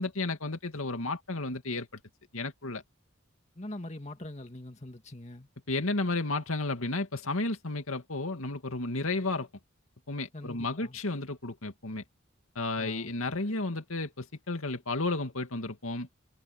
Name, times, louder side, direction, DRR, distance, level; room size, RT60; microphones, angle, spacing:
voice 1, 0.0-1.9 2.3-2.8 5.7-9.5 10.1-12.0 12.6-16.1, left 2 dB, 90° left, 2.4 m, -32 dB
voice 2, 3.6-5.5 10.3-11.0 12.8-13.2, left 1 dB, 30° left, 2.2 m, -43 dB
head